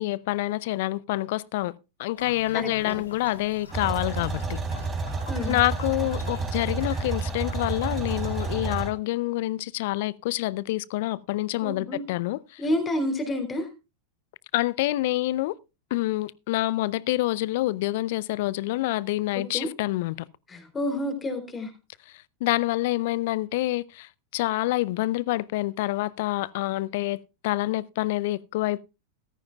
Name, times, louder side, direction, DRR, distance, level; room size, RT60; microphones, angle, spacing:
voice 1, 0.0-1.7 2.0-4.6 5.5-12.6 14.5-15.6 15.9-20.2 22.4-28.8, left 17 dB, 55° left, 0.5 m, -27 dB
sound 1, 2.2-8.5, left 3 dB, 80° left, 3.7 m, -44 dB
voice 2, 2.5-2.9 5.3-5.6 11.6-12.1 12.6-13.7 19.5-19.7 20.5-21.7, left 1 dB, 20° left, 3.2 m, -29 dB
sound 2, 3.7-8.9, right 3 dB, 20° right, 3.1 m, -30 dB
14.5 x 14.0 x 2.3 m
figure-of-eight pair, 90°, 0 cm